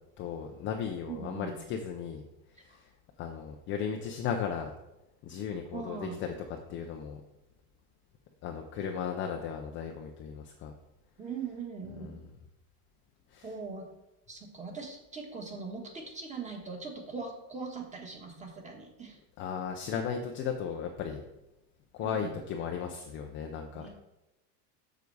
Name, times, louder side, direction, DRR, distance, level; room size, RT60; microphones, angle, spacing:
voice 1, 0.2-2.2 2.6-2.9 3.2-4.7 5.2-7.2 8.4-10.7 11.9-12.3 13.3-13.6 19.4-21.2 21.9-23.9, left 7 dB, 25° left, 3 dB, 0.5 m, -36 dB
voice 2, 1.1-1.6 2.7-2.8 5.7-6.2 11.2-12.2 13.4-13.9 14.3-19.2 22.0-22.4 23.7-23.9, right 4 dB, 15° right, 3 dB, 1.3 m, -41 dB
7.0 x 6.7 x 4.7 m, 0.95 s
supercardioid pair, 155°, 48 cm